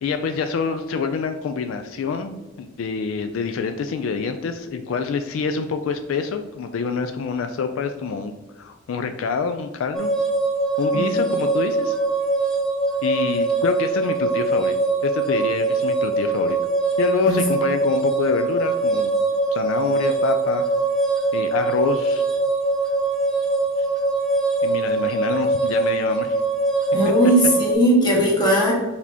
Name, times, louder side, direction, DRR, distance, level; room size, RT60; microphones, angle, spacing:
voice 1, 0.0-10.1 10.8-12.0 13.0-14.7 15.0-16.6 17.0-19.1 19.5-20.6 21.3-22.2 24.6-26.4, left 5 dB, 80° left, 8 dB, 0.3 m, -26 dB
sound 1, 9.9-27.7, right 2 dB, 5° left, 0.5 m, -22 dB
voice 2, 10.9-11.3 17.2-17.4 26.9-28.7, right 1 dB, 20° left, -4 dB, 1.4 m, -18 dB
4.8 x 3.4 x 2.7 m, 1.2 s
head